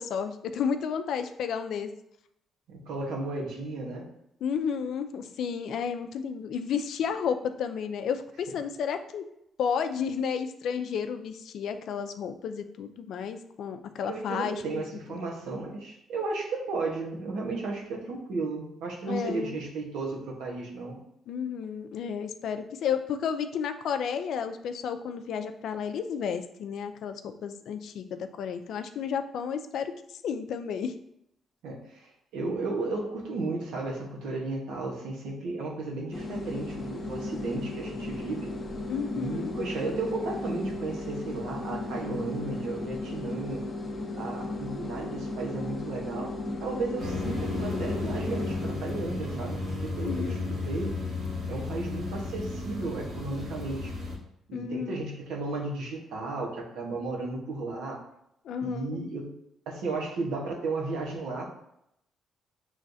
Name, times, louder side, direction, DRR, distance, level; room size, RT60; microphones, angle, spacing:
voice 1, 0.0-1.9 4.4-9.2 9.6-14.8 15.1-15.2 19.1-19.6 21.3-30.0 30.2-30.9 38.9-39.5 50.0-50.5 54.5-55.0 58.4-59.0, left 7 dB, 75° left, 8 dB, 0.4 m, -32 dB
voice 2, 2.7-4.1 14.1-21.0 31.6-38.5 39.1-43.6 44.2-46.3 46.6-51.0 51.5-53.9 54.5-58.0 58.6-59.3 59.7-61.4, right 3 dB, 85° right, -1 dB, 1.1 m, -34 dB
sound 1, 36.1-48.8, left 2 dB, 40° left, 0.7 m, -36 dB
sound 2, 47.0-54.2, left 3 dB, 70° right, 1.7 m, -33 dB
6.2 x 3.2 x 2.7 m, 0.80 s
cardioid pair, 90°, 0 cm